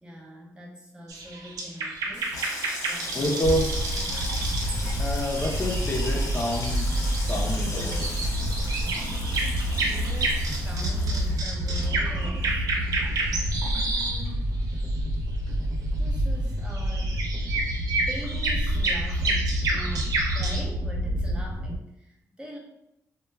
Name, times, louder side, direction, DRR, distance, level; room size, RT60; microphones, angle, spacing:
voice 1, 0.0-2.4 2.9-3.2 9.8-12.7 13.9-14.5 16.0-17.2 18.1-22.6, equal, 15° right, -2 dB, 0.6 m, -42 dB
sound 1, 1.1-14.3 14.6-15.0 16.7-20.6, right 3 dB, 75° right, 0.5 m, -31 dB
Water tap faucet / Sink (filling or washing), 2.0-14.8 15.1-15.8 16.0-16.4, left 2 dB, 75° left, 0.7 m, -39 dB
voice 2, 3.1-3.7 5.0-6.9 7.3-8.1 13.0-13.1, equal, 35° left, -1 dB, 0.5 m, -28 dB
sound 2, 3.4-21.8, equal, 60° right, 0.8 m, -28 dB
2.2 x 2.1 x 3.3 m, 0.83 s
cardioid pair, 95°, 6 cm